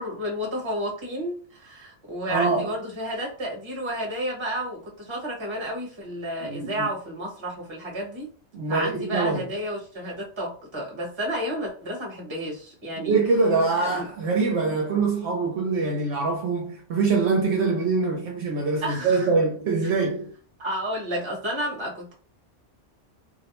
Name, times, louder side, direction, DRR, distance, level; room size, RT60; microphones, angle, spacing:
voice 1, 0.0-8.3 8.7-13.2 13.8-14.0 18.8-19.3 20.6-22.1, equal, 25° right, 0.8 m, -31 dB
voice 2, 2.3-2.7 6.4-6.9 8.5-9.5 13.0-20.3, right 4 dB, 65° right, 0.8 m, -24 dB
2.5 x 2.0 x 2.9 m
omnidirectional pair, 1.3 m